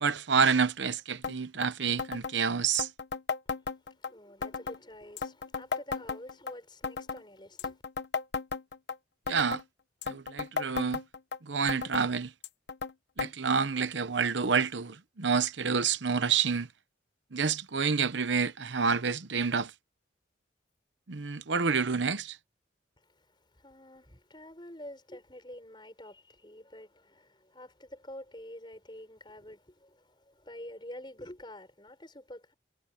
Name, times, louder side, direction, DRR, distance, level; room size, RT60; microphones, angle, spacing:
voice 1, 0.0-2.9 9.3-9.6 10.1-11.0 11.4-12.3 13.2-16.7 17.3-19.7 21.1-22.4, right 5 dB, 75° right, 0.9 m, -28 dB
sound 1, 1.2-1.4 1.6-1.7 2.0-2.3 2.7-4.1 4.4-4.8 5.2-6.5 6.8-7.2 7.6-9.0 9.3-9.6 10.0-11.4 11.7-12.1 12.4-12.9 13.2-13.3 13.6-13.7 14.4-14.5 15.3-15.4, left 5 dB, 65° left, 1.0 m, -35 dB
voice 2, 4.0-7.8 23.0-32.5, left 1 dB, 25° left, 6.7 m, -48 dB
head